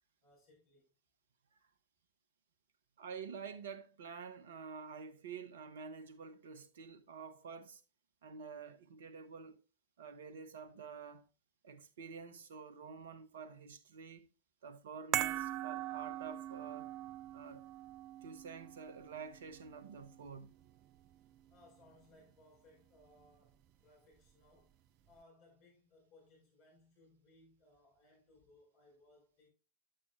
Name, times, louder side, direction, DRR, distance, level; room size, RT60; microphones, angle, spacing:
voice 1, 0.2-0.9 21.5-24.8 25.1-29.5, left 2 dB, 45° left, 4.1 m, -65 dB
voice 2, 3.0-7.8 8.2-9.6 10.0-11.2 11.6-14.3 14.6-16.9 17.3-17.6 18.2-20.5, right 5 dB, 60° right, 0.8 m, -49 dB
sound 1, 15.1-21.5 21.8-22.0, right 14 dB, 35° right, 0.3 m, -42 dB
8.7 x 8.3 x 2.3 m
figure-of-eight pair, 90°, 0 cm